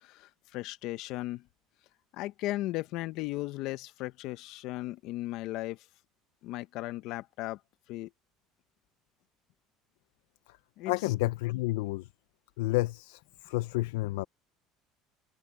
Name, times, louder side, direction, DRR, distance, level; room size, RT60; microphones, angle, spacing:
voice 1, 0.0-1.4 2.1-5.8 6.4-7.6 7.9-8.1 10.8-10.9, left 17 dB, 65° left, 1.1 m, -36 dB
voice 2, 10.9-12.1 12.6-14.3, left 20 dB, 85° left, 0.5 m, -30 dB
supercardioid pair, 100°, 0 cm